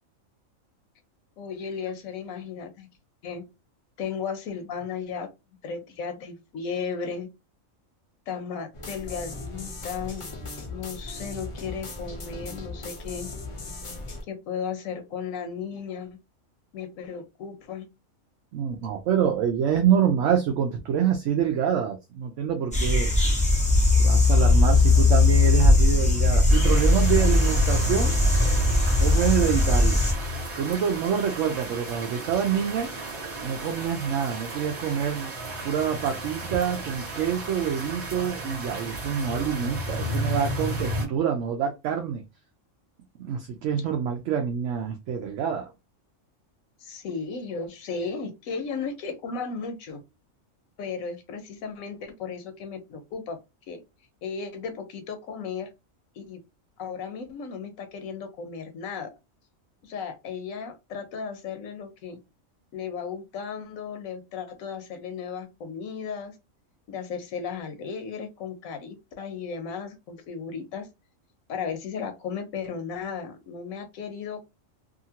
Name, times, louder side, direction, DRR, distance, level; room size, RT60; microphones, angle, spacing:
voice 1, 1.4-2.9 3.2-3.4 4.0-5.3 5.6-7.3 8.3-10.3 10.7-13.3 14.3-16.2 16.7-17.9 46.8-50.0 50.8-53.4 53.7-53.8 54.2-55.7 56.2-56.4 56.8-59.1 59.8-62.2 62.7-66.4 66.9-70.9 71.5-74.4, left 6 dB, 85° left, 1.1 m, -35 dB
sound 1, 8.7-14.2, left 3 dB, 45° left, 0.4 m, -38 dB
voice 2, 18.5-23.1 23.9-28.2 29.0-30.0 30.6-32.9 33.4-35.3 35.6-42.2 43.1-45.7, right 8 dB, 70° right, 0.9 m, -26 dB
sound 2, 22.7-30.1, left 2 dB, 5° left, 0.7 m, -19 dB
sound 3, 26.5-41.1, equal, 55° right, 1.5 m, -32 dB
2.8 x 2.5 x 2.8 m
omnidirectional pair, 1.4 m